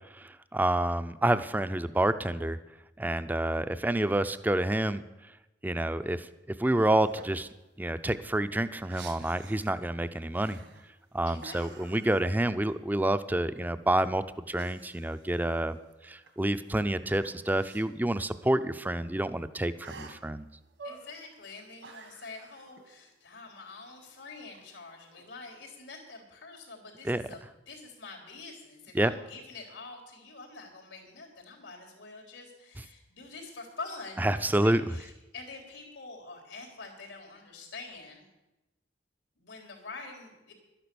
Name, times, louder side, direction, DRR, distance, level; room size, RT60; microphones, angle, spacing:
voice 1, 0.2-2.6 3.0-5.0 5.6-6.3 6.6-7.5 7.8-10.6 11.1-15.8 16.0-20.5 27.0-27.2 28.9-29.1 34.2-34.9, right 1 dB, 10° right, 12 dB, 0.4 m, -28 dB
sound 1, 7.0-7.4 7.8-7.9 8.2-9.8 10.2-11.0 11.4-12.9 13.2-13.3 14.5-16.3 16.6-17.9 18.3-18.4 18.6-18.7 19.8-20.3 20.7-21.2 21.5-22.9 24.3-25.2, right 3 dB, 75° right, 1.7 m, -50 dB
voice 2, 11.3-12.0 20.8-38.3 39.4-40.5, left 3 dB, 90° left, 0 dB, 3.6 m, -46 dB
12.0 x 10.5 x 6.9 m, 1.0 s
head